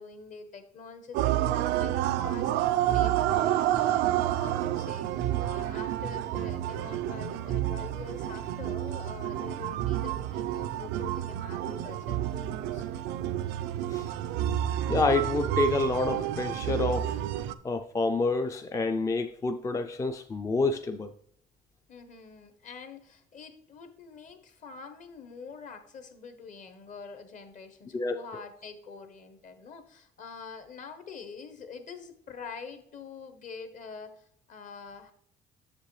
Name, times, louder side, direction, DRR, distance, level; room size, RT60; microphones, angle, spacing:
voice 1, 0.0-2.5 2.8-5.1 5.4-12.9 21.9-35.1, left 5 dB, 50° left, 1.0 m, -45 dB
sound 1, 1.1-17.5, right 12 dB, 90° right, 0.4 m, -29 dB
voice 2, 14.9-17.2 17.6-21.1 27.9-28.2, left 3 dB, 20° left, 0.3 m, -28 dB
7.4 x 6.7 x 3.1 m
cardioid pair, 110°, 17 cm